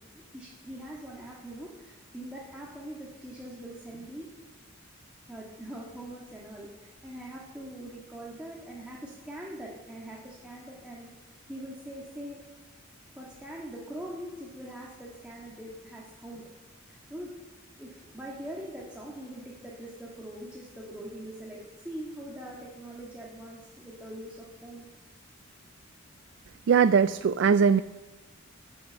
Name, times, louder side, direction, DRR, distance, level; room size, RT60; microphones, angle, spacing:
voice 1, 0.1-4.3 5.3-12.4 13.2-16.4 16.9-17.3 17.8-24.9, right 1 dB, 5° right, -5 dB, 1.8 m, -42 dB
voice 2, 26.7-27.8, right 6 dB, 60° right, 13 dB, 0.3 m, -20 dB
13.5 x 6.5 x 7.7 m, 1.3 s
head